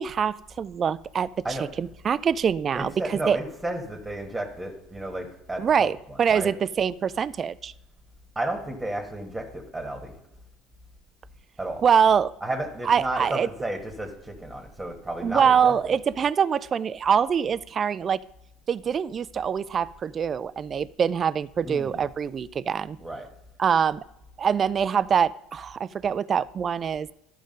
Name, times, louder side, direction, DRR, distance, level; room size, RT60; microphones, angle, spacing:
voice 1, 0.0-3.4 5.6-7.7 11.8-12.3 12.9-13.5 15.2-18.2 18.7-23.0 23.6-24.0 24.4-27.1, right 7 dB, 40° right, 18 dB, 0.4 m, -24 dB
voice 2, 2.7-5.9 6.3-6.5 8.3-10.1 11.6-11.8 12.4-15.9 21.6-22.0 23.0-23.3, right 1 dB, 10° right, 2 dB, 1.5 m, -32 dB
12.0 x 5.1 x 5.3 m, 0.84 s
supercardioid pair, 85°, 0 cm